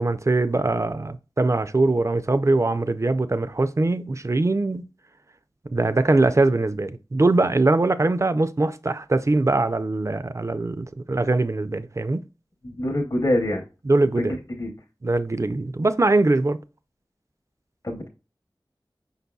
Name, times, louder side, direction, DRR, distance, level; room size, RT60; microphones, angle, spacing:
voice 1, 0.0-4.8 5.7-12.2 13.9-14.4 15.0-16.6, right 2 dB, 35° right, 0.4 m, -22 dB
voice 2, 12.6-13.6 14.1-14.7 17.8-18.1, left 1 dB, 40° left, 0.7 m, -25 dB
5.3 x 4.0 x 2.3 m
wide cardioid pair, 45°, 8 cm